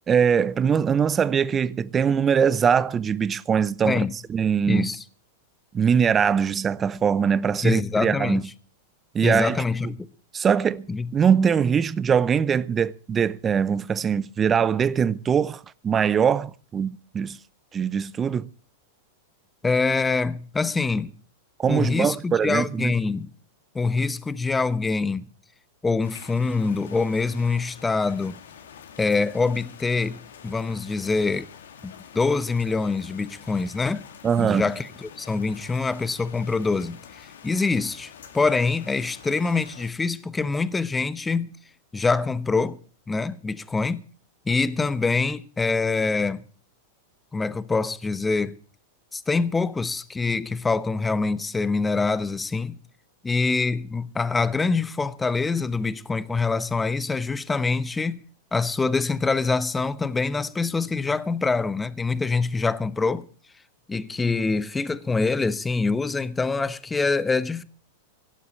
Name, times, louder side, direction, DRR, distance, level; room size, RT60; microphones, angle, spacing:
voice 1, 0.1-4.0 4.3-4.9 5.7-8.4 9.1-9.6 10.3-17.4 17.7-18.5 21.6-22.9 34.2-34.7, right 7 dB, 25° right, 0.7 m, -22 dB
voice 2, 4.7-5.0 7.6-8.4 9.2-10.1 10.9-11.1 19.6-21.1 21.7-23.3 23.7-25.3 25.8-28.4 29.0-30.2 30.4-31.5 31.8-34.0 34.4-37.0 37.4-41.6 41.9-42.8 43.1-44.0 44.5-46.4 47.3-48.5 49.1-52.8 53.2-58.2 58.5-63.3 63.9-67.6, left 4 dB, 15° left, 1.0 m, -25 dB
sound 1, 26.0-39.9, left 8 dB, 75° left, 2.2 m, -46 dB
17.5 x 8.0 x 8.2 m
hypercardioid pair, 110°, 0 cm